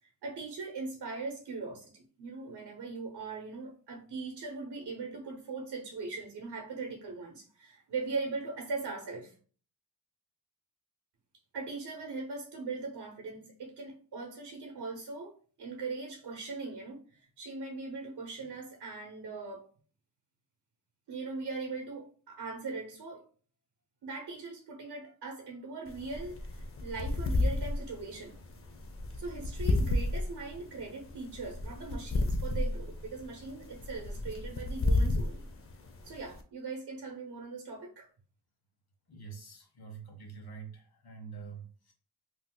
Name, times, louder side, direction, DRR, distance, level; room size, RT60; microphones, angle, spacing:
voice 1, 0.0-9.4 11.5-19.7 21.1-23.3 24.0-28.4 29.1-35.5 36.0-38.1, right 3 dB, 75° right, 0.7 m, -40 dB
sound 1, 25.9-36.4, left 2 dB, 35° left, 0.5 m, -32 dB
voice 2, 39.1-41.9, right 6 dB, 70° left, 1.0 m, -46 dB
2.7 x 2.1 x 3.7 m
wide cardioid pair, 90°, 39 cm